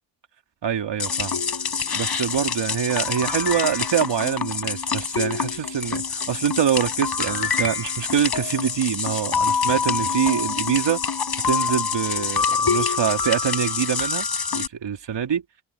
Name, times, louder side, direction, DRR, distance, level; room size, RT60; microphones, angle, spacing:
voice 1, 0.6-1.4 1.9-11.0 11.4-15.4, right 8 dB, 65° right, 2.8 m, -25 dB
sound 1, 1.0-14.7, left 6 dB, 55° left, 5.1 m, -26 dB
supercardioid pair, 55°, 46 cm